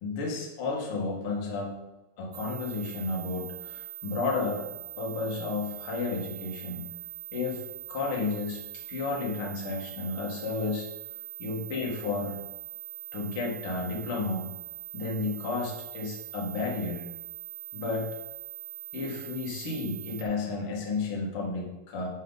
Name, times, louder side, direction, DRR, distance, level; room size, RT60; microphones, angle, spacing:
voice 1, 0.0-1.7 2.2-4.6 5.0-6.8 7.3-7.6 7.9-10.9 11.4-12.4 13.1-14.5 14.9-17.0 17.7-18.1 18.9-22.1, left 3 dB, 75° left, -3 dB, 1.2 m, -32 dB
sound 1, 2.3-20.2, right 9 dB, 70° right, 2.4 m, -42 dB
9.8 x 5.5 x 4.0 m, 1.0 s
omnidirectional pair, 5.9 m